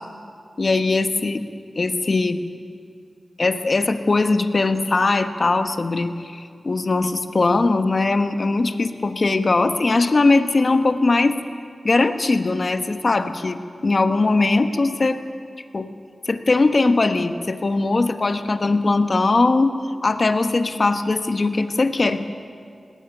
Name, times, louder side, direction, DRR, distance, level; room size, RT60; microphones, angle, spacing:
voice 1, 0.6-1.4 1.7-2.4 3.4-11.4 11.8-15.2 15.7-15.9 16.3-19.7 20.0-22.2, left 3 dB, 55° left, 8 dB, 1.3 m, -20 dB
19.0 x 17.0 x 9.2 m, 2.2 s
cardioid pair, 45°, 0 cm